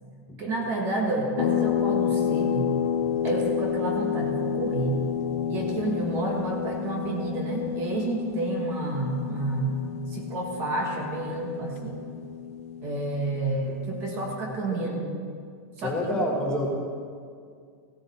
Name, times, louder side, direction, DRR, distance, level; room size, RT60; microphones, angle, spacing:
voice 1, 0.4-2.8 3.2-5.0 5.5-9.8 10.1-12.1 12.8-15.2 15.8-16.2, right 2 dB, 25° right, 1 dB, 1.4 m, -30 dB
sound 1, 1.4-14.5, left 8 dB, 60° left, 0.9 m, -30 dB
voice 2, 15.8-16.7, left 1 dB, 10° left, -3 dB, 1.6 m, -28 dB
15.5 x 12.5 x 4.3 m, 2.2 s
supercardioid pair, 180°, 9 cm